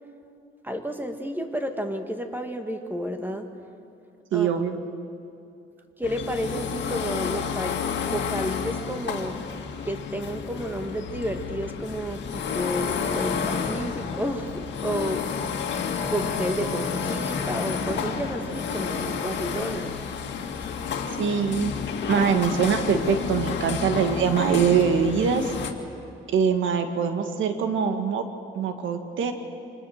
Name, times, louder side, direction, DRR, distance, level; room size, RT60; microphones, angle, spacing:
voice 1, 0.6-3.5 4.3-4.6 6.0-9.4 9.8-15.5 16.1-19.9, equal, 10° right, 5 dB, 1.9 m, -31 dB
voice 2, 4.3-4.8 21.2-21.7 22.1-25.5 26.3-28.2 28.6-29.3, right 7 dB, 75° right, 7 dB, 1.8 m, -23 dB
sound 1, 6.0-25.7, left 6 dB, 65° left, 2.2 m, -30 dB
26.0 x 20.5 x 6.6 m, 2.6 s
cardioid pair, 90°, 20 cm